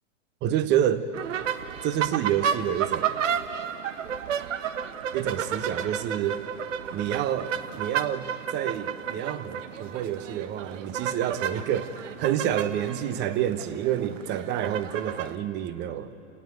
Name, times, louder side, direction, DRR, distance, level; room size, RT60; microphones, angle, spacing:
voice 1, 0.4-1.0 1.8-3.2 5.1-6.4 6.9-16.1, right 10 dB, 25° right, 12 dB, 1.1 m, -28 dB
sound 1, 1.1-15.4, right 8 dB, 70° right, 1.3 m, -32 dB
29.0 x 18.5 x 8.1 m, 2.9 s
hypercardioid pair, 130°, 39 cm